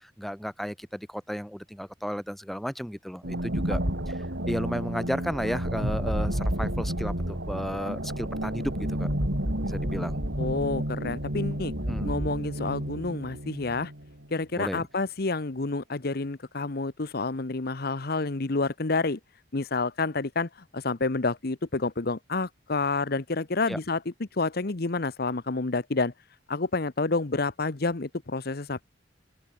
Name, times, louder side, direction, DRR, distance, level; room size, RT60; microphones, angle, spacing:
voice 1, 0.0-3.8 4.1-9.1 9.6-10.2 11.9-12.1 14.5-14.9 23.7-23.8, equal, ahead, 5.5 m, -33 dB
sound 1, 3.2-14.3, right 1 dB, 80° right, 5.9 m, -30 dB
voice 2, 10.4-11.7 12.0-13.9 14.3-19.2 19.5-26.1 26.5-28.8, left 3 dB, 60° left, 1.0 m, -29 dB
open air
head